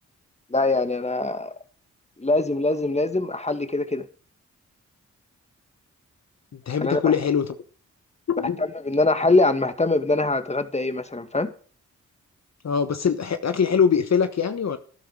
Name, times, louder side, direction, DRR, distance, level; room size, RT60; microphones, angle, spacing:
voice 1, 0.5-1.5 2.2-4.1 6.8-7.1 8.6-11.5, left 2 dB, 20° left, 2.0 m, -23 dB
voice 2, 6.5-7.5 8.3-8.7 12.6-14.8, left 7 dB, 55° left, 1.2 m, -23 dB
12.5 x 11.5 x 4.9 m
supercardioid pair, 45°, 32 cm